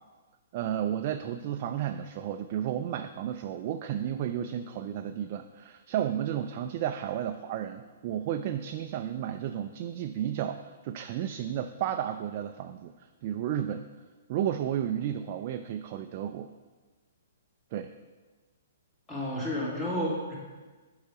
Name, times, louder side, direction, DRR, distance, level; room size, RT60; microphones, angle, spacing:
voice 1, 0.5-12.9 13.2-13.8 14.3-16.5 17.7-17.9, right 10 dB, 45° right, 6 dB, 0.3 m, -32 dB
voice 2, 19.1-20.3, left 1 dB, 20° left, -6 dB, 2.3 m, -31 dB
6.7 x 4.8 x 5.7 m, 1.3 s
hypercardioid pair, 135°, 0 cm